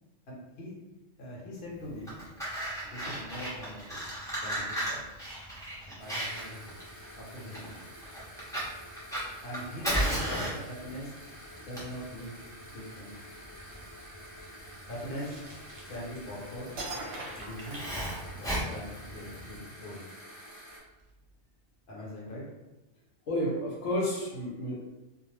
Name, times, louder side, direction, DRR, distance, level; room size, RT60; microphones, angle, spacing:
voice 1, 0.3-0.7 1.2-2.2 2.8-4.1 4.3-5.0 5.9-6.8 7.2-7.8 9.4-11.1 11.6-13.2 14.8-15.4 15.9-16.7 17.3-17.8 18.4-20.1 21.9-22.4, equal, 60° left, -4 dB, 0.9 m, -42 dB
Fire, 1.9-19.6, right 1 dB, 5° left, 0.5 m, -36 dB
sound 1, 6.0-20.8, equal, 35° left, 0.9 m, -49 dB
sound 2, 15.2-16.3 16.8-18.6, right 2 dB, 60° right, 0.8 m, -41 dB
voice 2, 23.3-24.8, equal, 80° left, -4 dB, 1.0 m, -31 dB
2.3 x 2.0 x 3.1 m, 1.0 s
omnidirectional pair, 1.3 m